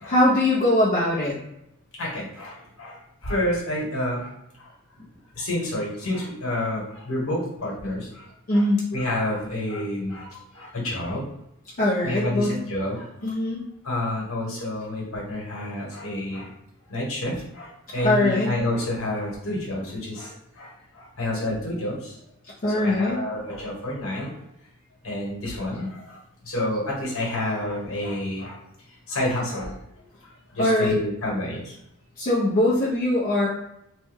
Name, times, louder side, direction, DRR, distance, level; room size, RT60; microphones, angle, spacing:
voice 1, 0.1-1.4 8.5-8.9 11.8-12.6 13.2-13.6 18.0-18.5 22.6-23.2 30.6-31.0 32.2-33.5, left 1 dB, 40° left, -7 dB, 0.6 m, -21 dB
voice 2, 2.0-4.3 4.6-4.7 5.3-8.6 8.9-11.2 12.0-13.1 13.8-16.5 16.9-22.2 22.7-24.3 25.0-28.6 29.1-29.7 30.2-31.7, left 1 dB, 65° left, -3 dB, 1.2 m, -29 dB
3.1 x 2.2 x 3.4 m, 0.81 s
head